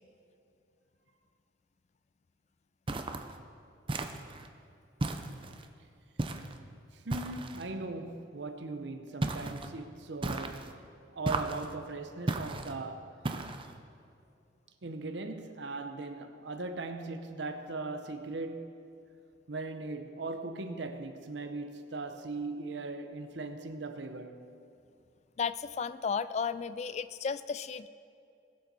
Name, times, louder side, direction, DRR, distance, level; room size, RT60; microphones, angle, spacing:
sound 1, 2.9-3.3 3.9-4.5 5.0-5.7 6.2-6.6 7.1-7.7 9.2-9.7 10.2-10.7 11.2-11.7 12.3-12.7 13.2-13.7, right 2 dB, 25° right, 0.6 m, -35 dB
voice 1, 6.9-10.8 11.1-13.2 14.8-18.8 19.5-24.5, right 3 dB, 65° right, 0.7 m, -39 dB
voice 2, 25.4-27.9, left 6 dB, 35° left, 0.3 m, -34 dB
20.5 x 7.5 x 4.1 m
head